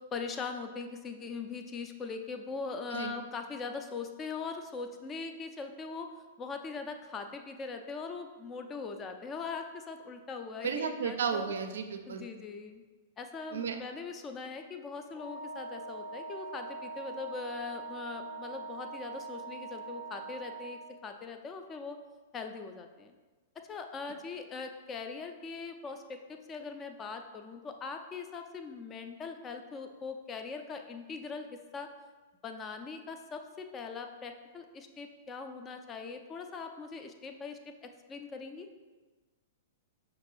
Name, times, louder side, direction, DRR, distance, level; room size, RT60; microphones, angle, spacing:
voice 1, 0.0-6.1 6.4-11.5 12.1-12.8 13.2-22.0 22.3-23.1 23.7-31.5 31.7-31.9 32.4-38.7, left 4 dB, 25° left, 6 dB, 0.4 m, -41 dB
voice 2, 10.6-12.2 13.5-13.8, right 6 dB, 65° right, 7 dB, 0.4 m, -33 dB
Wind instrument woodwind instrument, 15.1-20.9, right 3 dB, 45° left, 0.8 m, -43 dB
5.7 x 2.5 x 3.2 m, 1.3 s
figure-of-eight pair, 105°, 0 cm